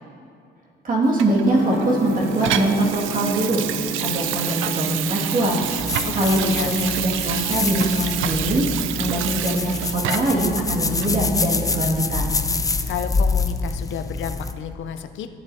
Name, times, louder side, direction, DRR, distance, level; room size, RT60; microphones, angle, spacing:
voice 1, 0.8-3.6 4.0-5.6 6.1-8.7 9.0-12.4, right 1 dB, 45° right, -3 dB, 2.1 m, -22 dB
Water tap faucet / Sink (filling or washing), 1.2-10.5 11.0-11.1, right 11 dB, 85° right, 0.4 m, -28 dB
Gong, 1.4-12.3, right 2 dB, 60° right, 2.6 m, -35 dB
sound 1, 5.8-14.5, left 4 dB, 15° left, 0.5 m, -26 dB
voice 2, 6.0-6.7 12.9-15.3, left 8 dB, 75° left, 9 dB, 0.6 m, -31 dB
14.0 x 8.4 x 2.7 m, 2.3 s
cardioid pair, 90°, 20 cm